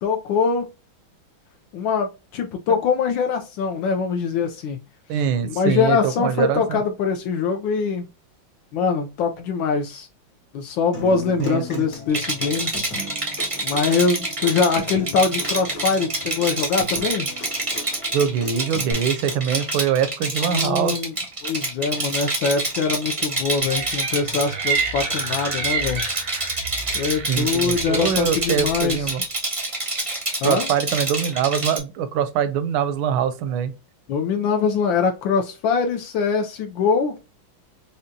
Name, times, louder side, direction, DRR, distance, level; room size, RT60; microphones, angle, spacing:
voice 1, 0.0-0.7 1.7-4.8 5.1-8.0 8.7-10.1 10.5-12.7 13.6-17.3 20.4-21.1 21.4-26.1 26.9-29.1 30.4-30.7 34.1-37.1, left 5 dB, 75° left, 1.2 m, -23 dB
voice 2, 5.1-6.8 11.4-11.8 18.1-21.0 27.3-29.2 30.4-33.7, right 8 dB, 80° right, 1.4 m, -23 dB
Human voice / Acoustic guitar, 10.9-18.9, left 2 dB, 60° left, 2.0 m, -38 dB
Rattle, 12.1-31.8, right 2 dB, 40° right, 0.4 m, -27 dB
sound 1, 23.7-29.1, right 5 dB, 65° right, 0.8 m, -30 dB
5.0 x 2.2 x 2.6 m
omnidirectional pair, 2.2 m